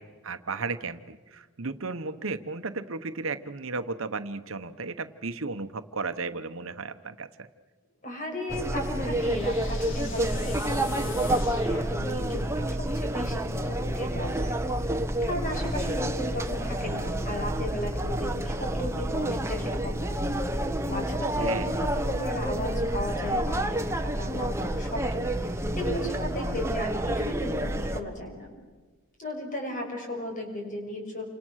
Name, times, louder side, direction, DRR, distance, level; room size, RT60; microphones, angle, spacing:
voice 1, 0.0-7.5 21.4-21.7, right 4 dB, 70° right, 10 dB, 1.1 m, -34 dB
sound 1, 8.0-12.6, left 6 dB, 60° left, 1.9 m, -46 dB
voice 2, 8.0-14.5 14.8-20.3 20.6-28.5 29.2-31.2, left 1 dB, 40° left, 2 dB, 6.2 m, -36 dB
sound 2, 8.5-28.0, right 1 dB, 15° right, 1.2 m, -29 dB
29.0 x 26.0 x 6.5 m, 1.3 s
head